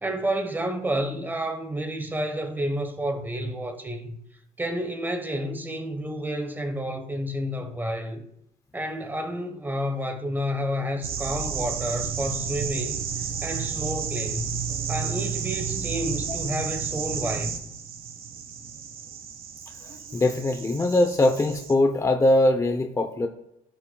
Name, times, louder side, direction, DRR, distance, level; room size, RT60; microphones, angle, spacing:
voice 1, 0.0-4.2 4.6-8.2 8.7-13.1 13.4-14.6 14.9-17.5, equal, 10° right, 1.2 m, -30 dB
sound 1, 11.0-21.7, right 7 dB, 60° right, 1.4 m, -32 dB
voice 2, 20.1-23.3, left 1 dB, 20° left, 0.8 m, -21 dB
16.5 x 5.6 x 2.3 m
cardioid pair, 110°, 17 cm